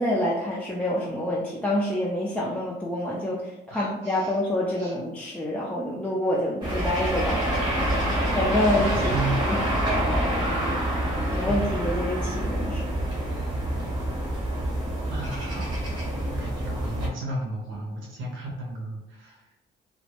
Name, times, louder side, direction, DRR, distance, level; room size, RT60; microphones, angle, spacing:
voice 1, 0.0-8.0 8.3-8.9 9.4-9.6 11.3-12.9, left 1 dB, 5° left, -5 dB, 0.3 m, -27 dB
voice 2, 3.7-4.4 4.7-5.0 8.7-9.4 11.2-11.6 13.8-13.9 15.1-19.5, right 2 dB, 80° right, -2 dB, 0.8 m, -34 dB
sound 1, 6.6-17.1, right 1 dB, 20° right, 0.8 m, -27 dB
2.2 x 2.0 x 2.9 m, 0.97 s
cardioid pair, 90°, 20 cm